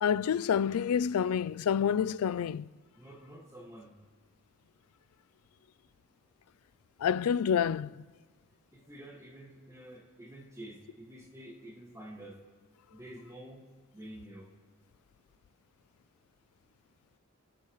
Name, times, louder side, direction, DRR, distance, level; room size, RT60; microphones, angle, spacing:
voice 1, 0.0-2.7 7.0-7.9, left 8 dB, 85° left, 0.3 m, -28 dB
voice 2, 3.0-3.9 8.7-12.4 12.9-13.7 13.9-14.5, right 1 dB, 15° right, 1.9 m, -48 dB
28.0 x 12.5 x 3.2 m
head